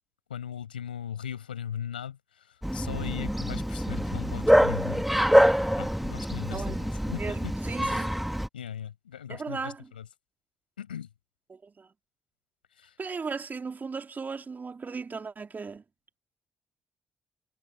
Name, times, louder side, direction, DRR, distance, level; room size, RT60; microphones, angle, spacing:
voice 1, 0.3-5.1 5.8-7.5 7.8-8.1 8.5-10.0 10.8-11.1 12.8-13.0, left 9 dB, 85° left, 5.7 m, -38 dB
Bark, 2.6-8.5, equal, ahead, 2.0 m, -25 dB
voice 2, 6.5-6.8 7.1-8.2 9.3-9.9 11.5-11.9 13.0-15.8, right 4 dB, 35° right, 3.6 m, -37 dB
figure-of-eight pair, 40°, 5 cm